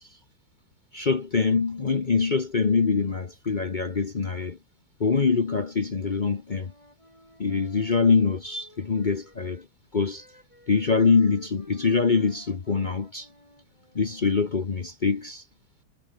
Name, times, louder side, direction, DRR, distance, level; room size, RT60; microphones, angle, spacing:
voice 1, 0.9-4.6 5.0-6.7 7.4-9.6 9.9-10.2 10.7-13.3 13.9-15.4, left 5 dB, 45° left, 0.6 m, -24 dB
Wind instrument woodwind instrument, 6.0-9.7 10.0-14.3, left 1 dB, 15° left, 7.4 m, -55 dB
omnidirectional pair, 2.3 m